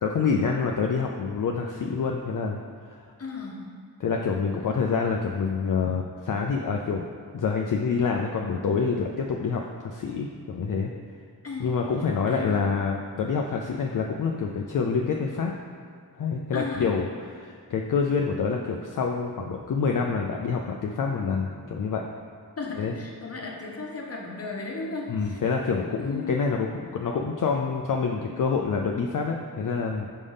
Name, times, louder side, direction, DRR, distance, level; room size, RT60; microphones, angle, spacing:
voice 1, 0.0-2.6 2.9-3.1 4.0-7.0 7.3-10.9 11.6-15.5 16.2-22.0 22.8-22.9 25.1-30.1, left 5 dB, 55° left, 1 dB, 0.4 m, -27 dB
voice 2, 3.2-3.6 4.6-4.8 11.4-11.8 12.3-12.6 16.5-16.9 22.6-25.4 25.7-26.3, left 4 dB, 35° left, -1 dB, 0.9 m, -35 dB
5.2 x 3.4 x 5.5 m, 2.1 s
wide cardioid pair, 100°, 40 cm